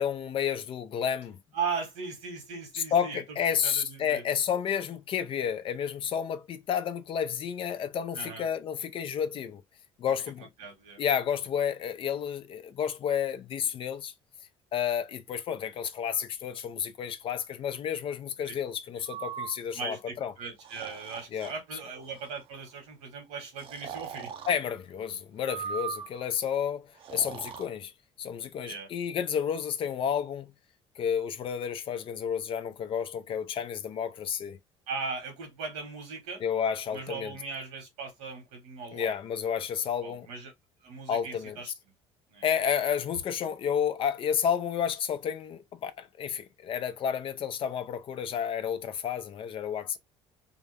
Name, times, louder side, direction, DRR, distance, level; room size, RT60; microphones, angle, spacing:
voice 1, 0.0-1.4 2.7-9.6 10.0-10.5 11.0-14.1 14.7-20.3 21.3-21.5 24.5-27.9 28.2-30.5 31.0-34.6 36.4-37.3 38.9-40.3 41.1-41.6 42.4-50.0, left 8 dB, 50° left, 0.7 m, -31 dB
voice 2, 1.5-3.4 3.6-4.2 8.1-8.5 10.4-11.0 18.5-18.6 19.7-24.3 28.6-28.9 34.9-36.4 36.9-39.1 40.0-40.5 40.8-41.7 42.3-42.5, right 5 dB, 90° right, 2.2 m, -38 dB
Breathing, 19.1-19.6 20.6-21.5 22.0-22.4 23.6-24.6 25.4-26.3 27.0-27.7, right 7 dB, 55° right, 0.7 m, -39 dB
4.0 x 2.1 x 3.6 m
supercardioid pair, 90°, 11 cm